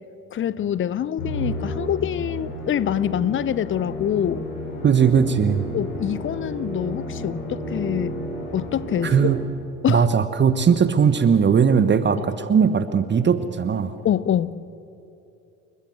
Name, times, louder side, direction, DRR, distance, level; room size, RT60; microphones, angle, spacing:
voice 1, 0.3-4.5 5.7-8.1 8.5-9.4 9.8-10.1 14.0-14.5, left 10 dB, 30° left, 20 dB, 0.7 m, -25 dB
Musical instrument, 1.2-9.7, equal, 65° left, 4.8 m, -32 dB
voice 2, 4.8-5.7 9.0-9.4 9.9-13.9, right 6 dB, 25° right, 12 dB, 1.1 m, -19 dB
29.0 x 14.0 x 7.9 m, 2.8 s
figure-of-eight pair, 60°, 40 cm